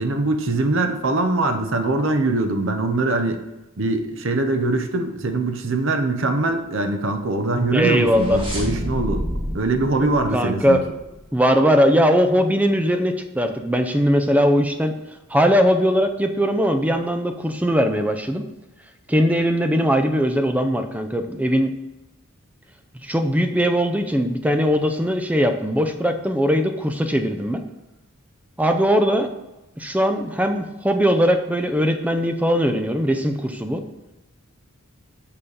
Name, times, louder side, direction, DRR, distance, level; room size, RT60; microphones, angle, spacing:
voice 1, 0.0-3.4 3.8-9.2 9.5-10.8, right 2 dB, 65° right, 6 dB, 0.8 m, -22 dB
sound 1, 7.6-11.2, equal, 25° right, 1.6 m, -30 dB
voice 2, 7.7-8.4 10.3-10.8 11.3-14.9 15.3-18.5 19.1-21.7 23.0-27.6 28.6-29.3 29.8-33.8, equal, 5° right, 6 dB, 0.4 m, -20 dB
6.8 x 5.6 x 4.0 m, 1.0 s
head